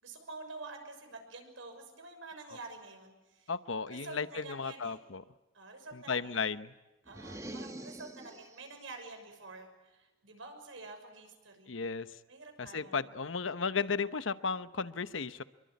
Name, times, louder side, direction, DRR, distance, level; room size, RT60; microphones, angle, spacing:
voice 1, 0.0-3.5 3.9-5.0 5.5-6.5 7.1-11.8 12.3-13.0, right 3 dB, 90° right, 5 dB, 6.4 m, -48 dB
voice 2, 3.5-5.2 5.9-6.7 11.7-12.1 12.6-15.4, left 5 dB, 75° left, 12 dB, 1.0 m, -34 dB
sound 1, 7.1-8.7, right 1 dB, 15° right, 1.2 m, -45 dB
26.0 x 23.5 x 9.5 m, 1.0 s
head